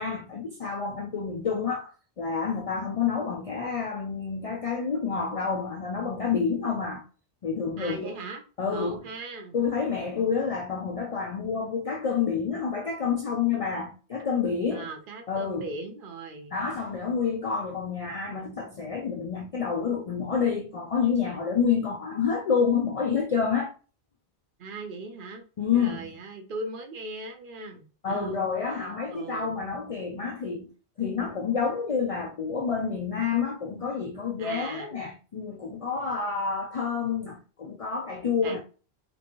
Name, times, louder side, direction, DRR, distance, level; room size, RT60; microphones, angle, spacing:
voice 1, 0.0-1.9 2.2-7.0 7.4-8.2 8.6-9.1 9.5-14.9 15.3-15.7 16.5-23.7 25.6-26.2 28.0-30.7 31.0-38.6, left 6 dB, 60° left, 0.3 m, -28 dB
voice 2, 7.8-9.6 14.7-16.5 24.6-25.4 25.7-28.5 29.1-29.7 34.4-34.9 38.4-38.6, right 3 dB, 60° right, 0.7 m, -39 dB
2.9 x 2.5 x 2.9 m
omnidirectional pair, 1.1 m